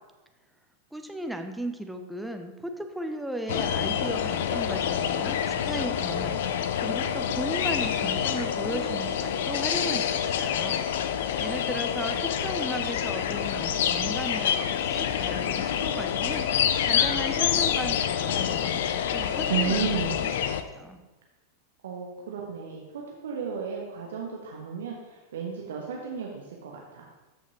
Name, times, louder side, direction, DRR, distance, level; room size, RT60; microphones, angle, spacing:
voice 1, 0.9-10.8 11.4-19.8 20.2-20.3 20.7-21.0, right 1 dB, 5° right, 5 dB, 0.7 m, -36 dB
sound 1, 3.5-20.6, left 9 dB, 55° left, 0.5 m, -27 dB
voice 2, 19.5-20.1 21.8-27.1, right 7 dB, 60° right, -1 dB, 1.1 m, -33 dB
13.5 x 5.8 x 2.8 m, 1.2 s
figure-of-eight pair, 90°, 0 cm